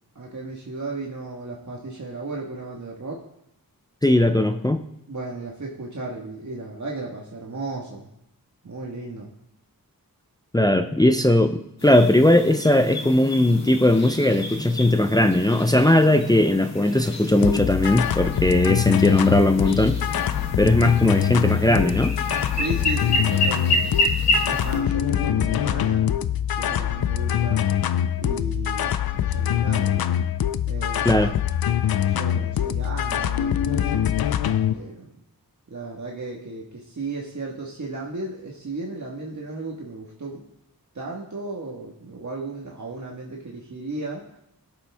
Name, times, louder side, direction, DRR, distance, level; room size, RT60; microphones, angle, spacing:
voice 1, 0.1-3.2 5.1-8.1 8.6-9.3 22.5-23.9 24.5-26.1 26.5-27.6 28.2-30.2 30.7-31.1 32.0-34.1 34.7-35.1 35.7-40.4 40.9-44.2, right 3 dB, 50° right, -3 dB, 1.6 m, -35 dB
voice 2, 4.0-4.8 10.5-20.3 20.6-22.1 31.0-31.3, left 1 dB, 10° left, 7 dB, 0.6 m, -19 dB
sound 1, 11.8-24.8, left 1 dB, 45° left, 2.1 m, -29 dB
sound 2, 17.4-34.7, left 10 dB, 75° left, 0.5 m, -24 dB
17.0 x 7.3 x 3.5 m, 0.78 s
wide cardioid pair, 70°, 37 cm